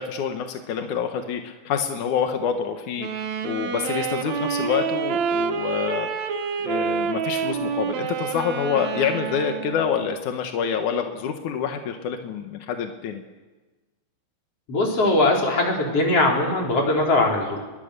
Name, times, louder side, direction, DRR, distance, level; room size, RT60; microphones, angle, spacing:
voice 1, 0.0-3.1 3.4-6.1 6.6-13.2, left 7 dB, 70° left, 6 dB, 1.8 m, -27 dB
Wind instrument woodwind instrument, 3.0-10.2, right 6 dB, 85° right, 1.5 m, -28 dB
voice 2, 14.7-17.6, left 2 dB, 30° left, 0 dB, 5.1 m, -20 dB
29.5 x 22.5 x 6.8 m, 1.2 s
omnidirectional pair, 5.6 m